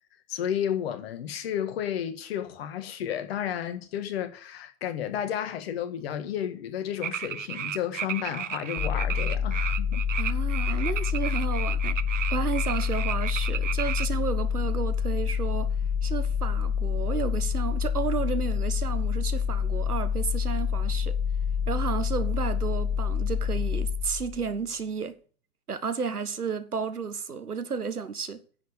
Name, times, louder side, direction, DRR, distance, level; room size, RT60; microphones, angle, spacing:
voice 1, 0.3-10.0, left 10 dB, 40° left, 1.7 m, -32 dB
sound 1, 7.0-14.1, right 10 dB, 55° right, 0.8 m, -33 dB
sound 2, 8.8-24.5, left 7 dB, 25° left, 0.9 m, -27 dB
voice 2, 10.2-15.7 16.0-21.2 21.7-25.1 25.7-28.4, right 5 dB, 80° right, 1.5 m, -32 dB
10.0 x 7.2 x 6.8 m
figure-of-eight pair, 115°, 45 cm